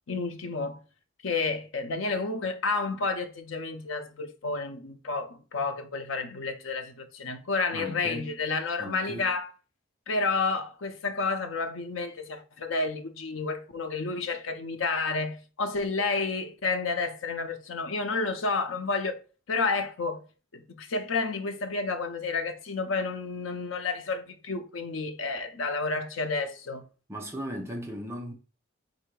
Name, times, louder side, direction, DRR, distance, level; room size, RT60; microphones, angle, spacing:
voice 1, 0.1-0.8 1.2-9.5 10.1-19.2 19.5-20.2 20.5-26.8, left 3 dB, 90° left, 0.6 m, -30 dB
voice 2, 7.7-8.4 8.8-9.3 27.1-28.3, equal, 15° right, 0.7 m, -37 dB
3.8 x 2.6 x 4.6 m
head